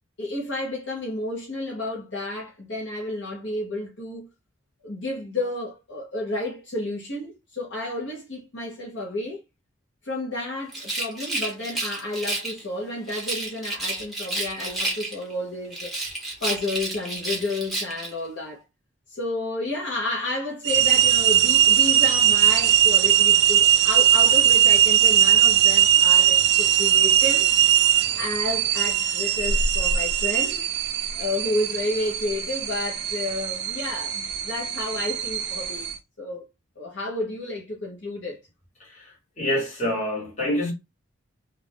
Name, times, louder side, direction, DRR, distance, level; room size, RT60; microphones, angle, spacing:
voice 1, 0.2-4.3 4.8-9.4 10.0-15.9 16.4-18.6 19.1-27.5 27.8-30.7 31.2-36.5 36.8-38.4, left 2 dB, 60° left, 0.8 m, -31 dB
Rattle, 10.7-12.6 13.1-15.3 15.7-18.1, right 2 dB, ahead, 0.7 m, -30 dB
sound 1, 20.6-36.0, right 10 dB, 50° right, 0.4 m, -20 dB
voice 2, 39.4-40.7, left 1 dB, 35° left, 1.2 m, -26 dB
2.4 x 2.2 x 3.3 m
head